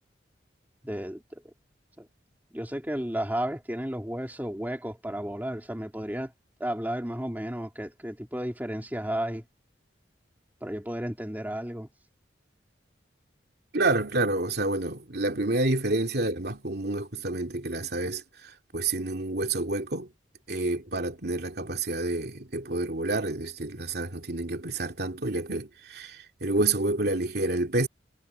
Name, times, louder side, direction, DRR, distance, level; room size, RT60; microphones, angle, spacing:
voice 1, 0.8-1.5 2.0-2.1 2.5-6.3 6.6-9.4 10.6-11.9, equal, 10° right, 2.7 m, -33 dB
voice 2, 13.7-18.2 18.7-20.1 20.5-27.9, right 2 dB, 60° right, 2.7 m, -28 dB
head